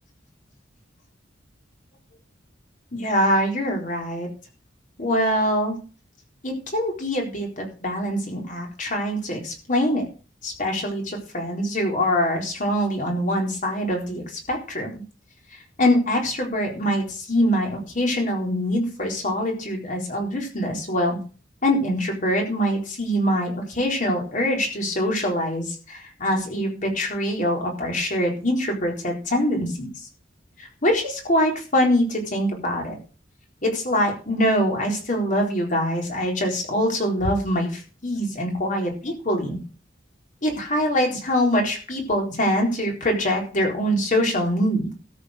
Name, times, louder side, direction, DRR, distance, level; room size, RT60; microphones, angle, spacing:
voice 1, 2.9-4.3 5.0-5.8 6.4-10.0 10.4-15.0 15.8-21.2 21.6-29.9 30.6-33.0 33.6-39.6 40.4-44.9, equal, 45° left, 1 dB, 4.0 m, -24 dB
13.0 x 6.7 x 6.5 m, 0.35 s
head